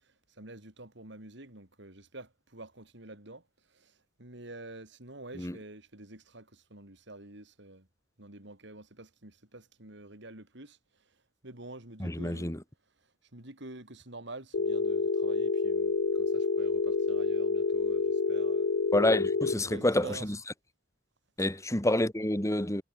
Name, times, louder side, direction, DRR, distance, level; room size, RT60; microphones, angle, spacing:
voice 1, 0.4-3.4 3.7-3.9 4.2-7.9 8.2-10.8 11.4-12.5 13.3-18.7 19.4-20.3, right 2 dB, 65° right, 4.3 m, -47 dB
voice 2, 12.0-12.6 18.9-20.4 21.4-22.8, left 1 dB, 15° left, 2.2 m, -28 dB
Telephone, 14.5-19.5, left 4 dB, 65° left, 0.6 m, -28 dB
head